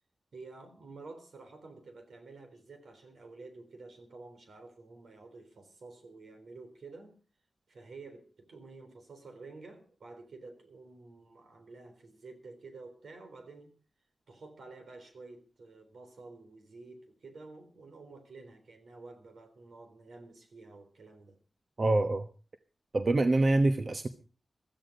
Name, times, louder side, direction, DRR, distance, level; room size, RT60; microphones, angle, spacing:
voice 1, 0.3-7.1 7.7-13.7 14.3-21.4, right 3 dB, 80° right, 4.0 m, -50 dB
voice 2, 21.8-22.3 22.9-24.1, right 2 dB, 45° right, 1.1 m, -25 dB
16.0 x 14.0 x 5.2 m
wide cardioid pair, 100°, 0 cm